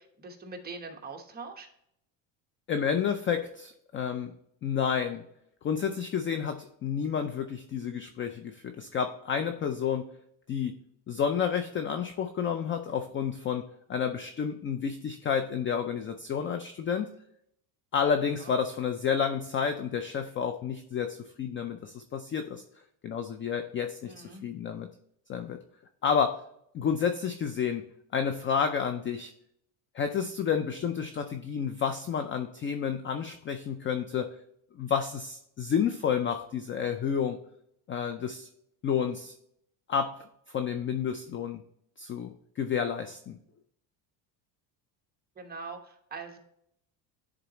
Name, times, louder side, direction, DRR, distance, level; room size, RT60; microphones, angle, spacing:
voice 1, 0.0-1.7 18.4-18.6 24.1-24.5 45.4-46.4, right 4 dB, 20° right, 2 dB, 1.1 m, -42 dB
voice 2, 2.7-4.3 4.6-5.2 5.6-10.1 10.5-10.8 11.1-17.1 17.9-22.6 23.0-24.9 25.3-25.6 26.0-26.4 26.7-27.8 28.1-29.3 29.9-34.4 34.8-37.4 37.9-38.5 38.8-39.3 39.9-40.2 40.5-41.6 42.0-43.4, left 7 dB, 30° left, 7 dB, 0.3 m, -30 dB
10.0 x 3.9 x 2.9 m, 0.73 s
cardioid pair, 130°, 48 cm